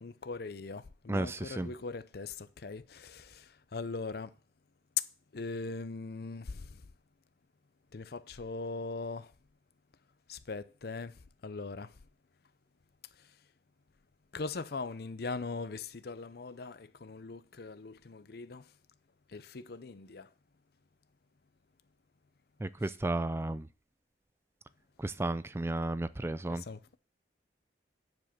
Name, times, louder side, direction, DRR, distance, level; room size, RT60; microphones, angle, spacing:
voice 1, 0.0-4.3 5.0-5.1 5.3-6.9 7.9-9.3 10.3-12.0 13.1-13.4 14.3-18.7 19.3-20.3 22.8-22.9 26.5-27.0, left 4 dB, 55° left, 0.6 m, -40 dB
voice 2, 1.1-1.7 22.6-23.7 25.0-26.6, right 2 dB, 15° right, 0.3 m, -33 dB
9.4 x 5.0 x 5.9 m
head